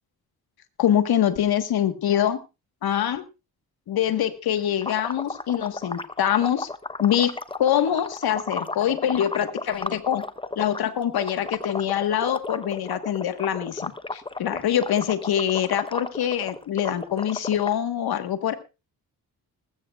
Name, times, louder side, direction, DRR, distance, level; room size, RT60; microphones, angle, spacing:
voice 1, 0.8-2.4 2.8-3.2 3.9-6.7 7.0-10.2 10.6-18.5, left 10 dB, 80° left, 9 dB, 1.5 m, -24 dB
sound 1, 4.8-10.8 11.2-17.8, left 3 dB, 15° left, 0.8 m, -33 dB
20.5 x 14.5 x 2.4 m, 0.28 s
cardioid pair, 120°, 37 cm